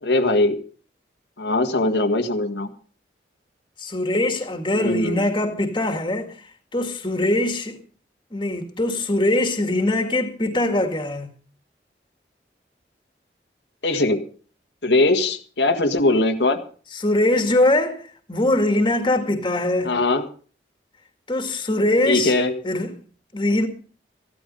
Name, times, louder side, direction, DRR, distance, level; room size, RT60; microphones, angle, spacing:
voice 1, 0.0-0.5 1.4-2.7 4.7-5.2 13.8-14.2 14.8-16.6 19.8-20.2 22.1-22.6, left 2 dB, 85° left, 1.8 m, -20 dB
voice 2, 3.8-6.3 6.7-7.8 8.3-11.3 16.9-19.9 21.3-22.3 22.6-22.9 23.3-23.7, left 1 dB, 25° left, 2.0 m, -22 dB
15.0 x 12.5 x 5.5 m
head